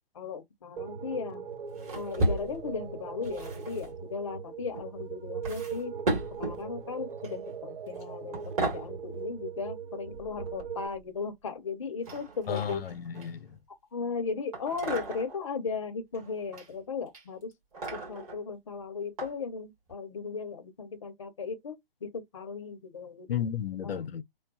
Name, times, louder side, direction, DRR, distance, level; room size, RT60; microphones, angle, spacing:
voice 1, 0.1-1.5 1.9-5.9 6.4-12.8 13.9-17.5 17.9-21.8 22.0-23.4 23.8-23.9, left 5 dB, 35° left, 0.5 m, -36 dB
sound 1, 0.8-10.9, right 6 dB, 60° right, 0.6 m, -40 dB
sound 2, 1.8-2.8 3.2-3.9 4.7-4.9 5.4-6.6 7.2-7.5 7.9-8.0 8.3-8.9 10.1-11.0 12.0-13.6 14.5-15.4 16.1-16.7 17.1-18.4 19.2-19.3 19.9-20.0, right 1 dB, 40° right, 1.8 m, -34 dB
voice 2, 12.5-13.6 23.3-24.2, left 9 dB, 80° left, 0.5 m, -33 dB
3.0 x 2.2 x 2.3 m
hypercardioid pair, 160°, 29 cm